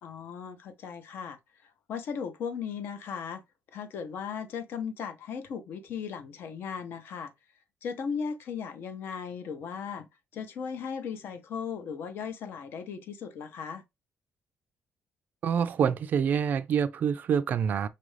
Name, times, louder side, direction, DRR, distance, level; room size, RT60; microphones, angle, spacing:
voice 1, 0.0-3.4 3.7-7.3 7.8-13.8, left 6 dB, 65° left, 0.7 m, -37 dB
voice 2, 15.4-17.9, right 7 dB, 45° right, 0.3 m, -26 dB
5.4 x 2.5 x 3.1 m
cardioid pair, 175°, 4 cm